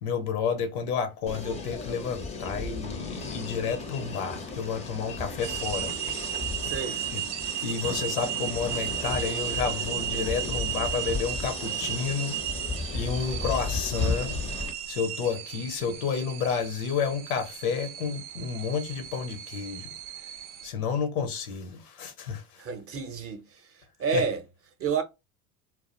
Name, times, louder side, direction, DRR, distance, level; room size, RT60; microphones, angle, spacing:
voice 1, 0.0-5.9 7.1-7.2 7.6-12.4 12.9-14.4 14.9-19.9 20.6-22.6 24.1-24.2, left 6 dB, 85° left, 0.7 m, -30 dB
sound 1, 1.3-14.7, left 3 dB, 15° left, 0.4 m, -35 dB
sound 2, 5.4-20.7, right 11 dB, 80° right, 0.5 m, -35 dB
voice 2, 6.6-7.0 22.6-23.7 24.0-24.4 24.8-25.0, right 5 dB, 30° right, 0.6 m, -29 dB
2.3 x 2.0 x 2.8 m
hypercardioid pair, 80°, 44 cm